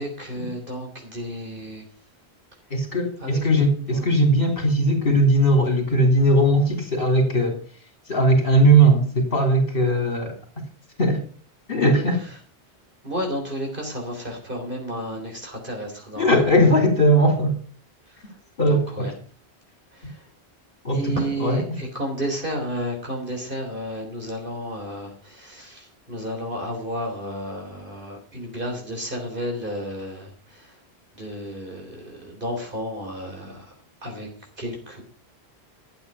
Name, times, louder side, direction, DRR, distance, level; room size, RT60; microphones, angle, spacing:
voice 1, 0.0-1.8 3.2-3.6 3.9-4.1 13.0-16.7 18.6-19.1 20.9-30.3 30.6-30.7 31.2-33.7 34.0-34.3 34.6-35.0, equal, 50° right, 1 dB, 3.8 m, -32 dB
voice 2, 2.7-7.6 8.1-10.4 11.0-11.2 11.7-12.2 16.2-17.5 18.6-19.1 20.8-21.8, right 1 dB, 55° left, 2 dB, 3.2 m, -19 dB
12.5 x 8.5 x 5.4 m, 0.42 s
omnidirectional pair, 1.1 m